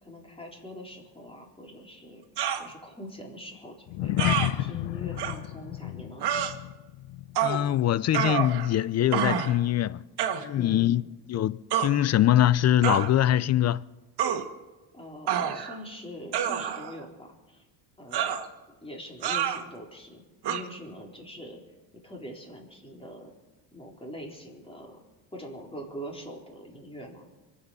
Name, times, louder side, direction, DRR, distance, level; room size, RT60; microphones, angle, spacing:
voice 1, 0.0-2.2 2.5-3.7 4.0-6.3 10.6-10.9 14.9-17.6 18.0-18.4 18.7-21.6 22.0-23.3 23.7-25.0 25.3-27.3, equal, 10° left, 4.0 m, -43 dB
sound 1, 2.4-2.7 4.2-4.5 5.2-5.3 6.2-6.5 7.4-7.6 8.1-8.8 9.1-9.6 10.2-10.4 11.7-11.9 12.8-13.1 14.2-14.4 15.3-15.8 16.3-17.0 18.1-18.5 19.2-19.6 20.4-20.6, right 9 dB, 55° right, 1.7 m, -27 dB
sound 2, 3.9-8.5 8.8-9.1 9.5-9.6, left 14 dB, 70° left, 0.7 m, -32 dB
voice 2, 7.4-10.0 10.4-11.0 11.3-13.8, left 12 dB, 35° left, 0.4 m, -23 dB
24.5 x 8.5 x 6.6 m
cardioid pair, 105°, 47 cm